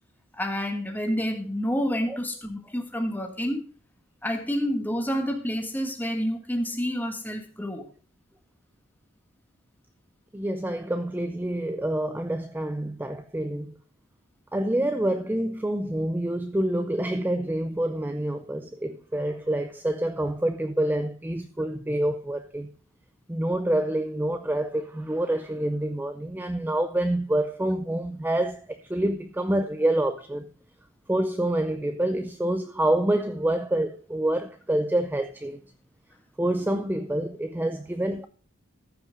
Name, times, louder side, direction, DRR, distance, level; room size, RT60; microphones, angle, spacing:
voice 1, 0.3-3.6 4.2-7.9, equal, 10° left, 1.6 m, -28 dB
voice 2, 10.3-13.8 14.5-22.7 23.3-30.5 31.1-35.6 36.4-38.3, right 1 dB, 10° right, 0.5 m, -27 dB
14.0 x 5.9 x 5.1 m
head